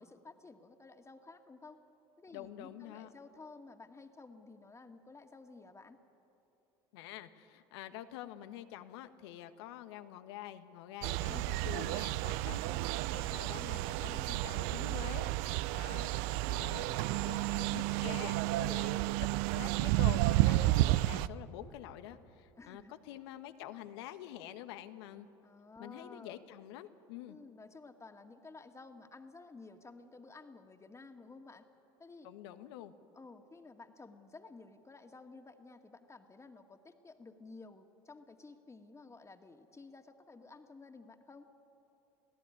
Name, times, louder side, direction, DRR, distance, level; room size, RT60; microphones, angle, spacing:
voice 1, 0.0-1.8 2.2-6.0 11.3-11.6 12.5-12.9 14.1-14.4 16.5-17.5 22.6-22.9 25.4-26.4 27.3-31.7 32.0-32.3 32.6-32.7 33.1-41.5, left 3 dB, 20° left, 5 dB, 2.3 m, -53 dB
voice 2, 2.3-3.1 6.9-12.6 13.1-14.2 14.4-16.1 16.5-16.8 17.3-19.1 19.5-25.3 25.8-27.4 32.2-32.9, left 12 dB, 75° left, 11 dB, 1.3 m, -47 dB
sound 1, 11.0-21.3, right 17 dB, 70° right, 0.5 m, -31 dB
28.0 x 17.0 x 9.8 m, 2.9 s
hypercardioid pair, 70°, 14 cm